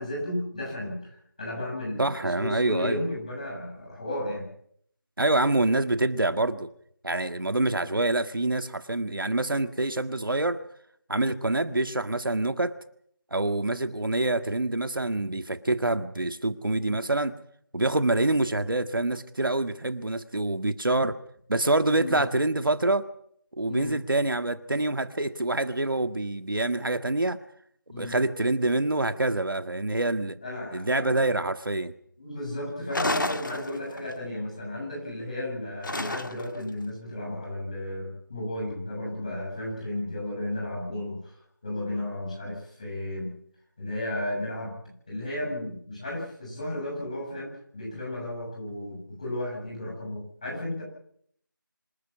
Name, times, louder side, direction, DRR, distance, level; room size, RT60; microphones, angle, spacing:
voice 1, 0.0-4.5 21.9-22.2 23.7-24.0 27.9-28.2 30.4-31.3 32.2-41.3 41.6-43.3 43.8-44.8 45.1-50.8, left 1 dB, 20° left, -3 dB, 7.5 m, -34 dB
voice 2, 2.0-3.0 5.2-6.7 7.0-10.6 11.1-12.7 13.3-17.3 17.7-21.2 21.5-23.1 23.6-27.4 28.0-30.4 30.7-31.9, right 2 dB, 75° right, 10 dB, 1.7 m, -26 dB
sound 1, 32.9-34.1 35.8-36.6, left 2 dB, 65° left, 1.9 m, -30 dB
26.5 x 12.5 x 9.8 m, 0.67 s
figure-of-eight pair, 180°, 11 cm